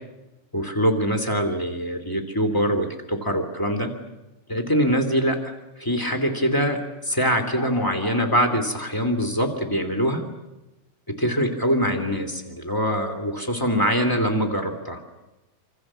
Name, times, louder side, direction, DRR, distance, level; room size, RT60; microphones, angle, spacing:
voice 1, 0.5-3.9 4.5-5.5 5.8-10.2 11.1-15.0, equal, 15° left, 6 dB, 0.7 m, -23 dB
26.5 x 25.5 x 7.5 m, 1.0 s
omnidirectional pair, 5.6 m